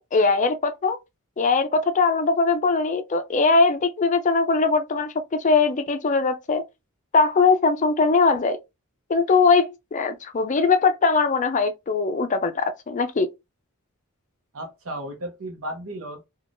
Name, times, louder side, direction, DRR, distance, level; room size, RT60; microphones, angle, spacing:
voice 1, 0.1-1.0 1.4-6.6 7.1-8.6 9.1-13.3, left 4 dB, 35° left, 0.4 m, -21 dB
voice 2, 14.5-16.3, right 1 dB, 70° right, 0.8 m, -34 dB
3.5 x 2.3 x 2.5 m
head